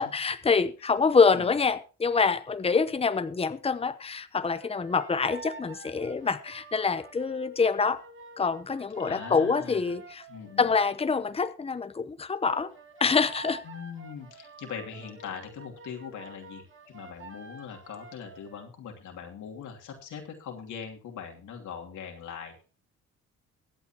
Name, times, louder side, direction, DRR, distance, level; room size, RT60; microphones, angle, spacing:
voice 1, 0.0-8.0 8.4-10.2 10.6-12.7 13.0-13.6, left 5 dB, 20° left, 0.9 m, -26 dB
sound 1, 4.5-10.7 12.5-18.7, right 3 dB, 40° right, 2.3 m, -48 dB
voice 2, 9.0-9.9 10.3-10.7 13.6-22.6, left 7 dB, 75° left, 2.9 m, -41 dB
23.0 x 8.1 x 3.0 m
cardioid pair, 90°, 30 cm